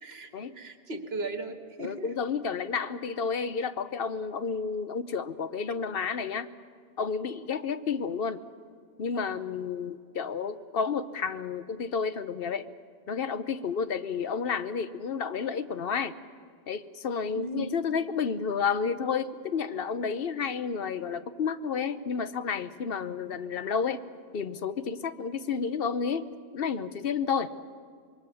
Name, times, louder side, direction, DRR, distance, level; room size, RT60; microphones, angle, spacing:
voice 1, 0.6-2.1 17.3-17.7, right 3 dB, 80° right, 7 dB, 1.7 m, -36 dB
voice 2, 1.8-6.5 7.0-8.4 9.0-12.7 13.1-16.1 16.7-24.0 24.3-26.3 26.5-27.5, left 6 dB, 65° left, 12 dB, 1.0 m, -31 dB
26.0 x 22.0 x 7.0 m, 2.1 s
omnidirectional pair, 1.0 m